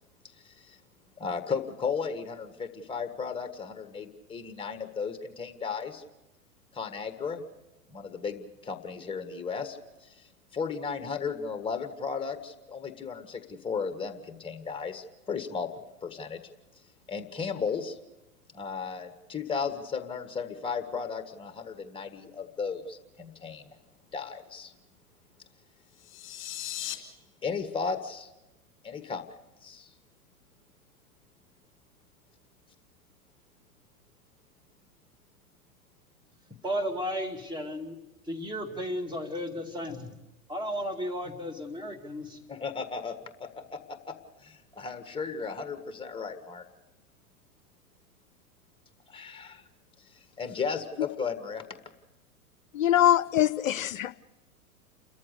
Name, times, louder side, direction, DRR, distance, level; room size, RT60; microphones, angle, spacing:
voice 1, 0.4-0.8 1.2-6.0 6.7-7.4 7.9-10.3 10.5-15.7 16.0-16.4 17.1-18.0 18.5-23.6 24.1-24.7 27.4-28.3 28.8-29.2 29.6-29.9 42.5-43.1 43.4-44.1 44.4-46.6 49.1-49.6 50.4-51.6, left 5 dB, 10° left, 8 dB, 1.6 m, -35 dB
sound 1, 25.9-26.9, left 13 dB, 25° left, 3.0 m, -37 dB
voice 2, 36.6-38.0 38.2-40.2 40.5-42.4, equal, 10° right, 4 dB, 2.4 m, -34 dB
voice 3, 52.7-54.1, left 12 dB, 65° left, 17 dB, 0.6 m, -23 dB
29.5 x 14.0 x 6.7 m, 0.98 s
figure-of-eight pair, 100°, 44 cm